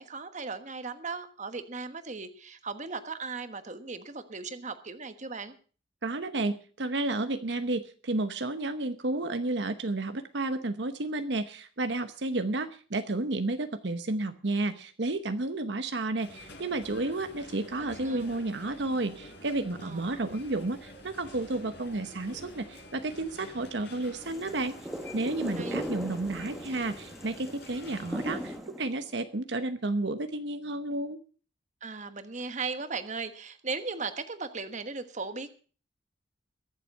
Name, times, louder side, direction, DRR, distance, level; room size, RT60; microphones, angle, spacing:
voice 1, 0.0-5.5 18.0-18.3 19.8-20.2 25.6-25.8 31.8-35.5, right 4 dB, 40° right, 10 dB, 1.3 m, -37 dB
voice 2, 6.0-24.7 25.1-31.2, right 2 dB, 70° right, 8 dB, 1.0 m, -31 dB
sound 1, 16.2-28.6, left 1 dB, 70° left, 5.8 m, -48 dB
sound 2, 24.2-29.1, equal, ahead, 1.3 m, -39 dB
22.5 x 7.5 x 5.4 m, 0.40 s
head